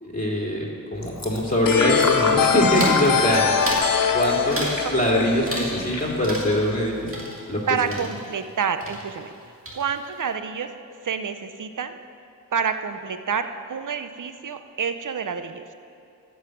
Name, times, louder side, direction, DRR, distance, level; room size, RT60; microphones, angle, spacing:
voice 1, 0.0-3.5 4.1-7.1 7.5-7.6 7.9-8.0, left 1 dB, 25° left, -3 dB, 2.5 m, -23 dB
Fill (with liquid), 0.9-7.1, left 1 dB, 50° left, 1.7 m, -32 dB
sound 1, 1.7-6.3, left 7 dB, 70° left, 0.6 m, -23 dB
sound 2, 2.8-3.1 3.6-4.0 4.5-4.9 5.5-6.0 6.2-8.6 8.8-9.4 9.7-10.2, right 1 dB, 40° right, 2.0 m, -33 dB
voice 2, 4.3-4.9 7.7-9.3 9.7-10.7 11.0-12.0 12.5-15.6, right 6 dB, 60° right, 9 dB, 0.6 m, -28 dB
13.5 x 5.5 x 7.7 m, 2.6 s
wide cardioid pair, 75°, 35 cm